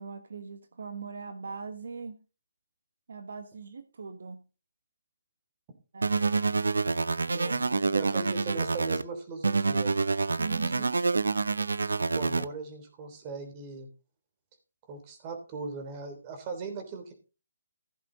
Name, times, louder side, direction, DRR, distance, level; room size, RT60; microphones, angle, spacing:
voice 1, 0.0-2.2 3.1-4.4 5.9-6.2 10.4-10.9, right 5 dB, 65° right, 9 dB, 1.4 m, -40 dB
sound 1, 6.0-9.0 9.4-12.5, right 4 dB, 90° right, 0.7 m, -27 dB
voice 2, 7.3-10.0 10.7-10.8 12.1-13.9 14.9-17.1, right 4 dB, 25° right, 6 dB, 3.3 m, -39 dB
16.0 x 7.7 x 4.0 m, 0.33 s
hypercardioid pair, 160°, 0 cm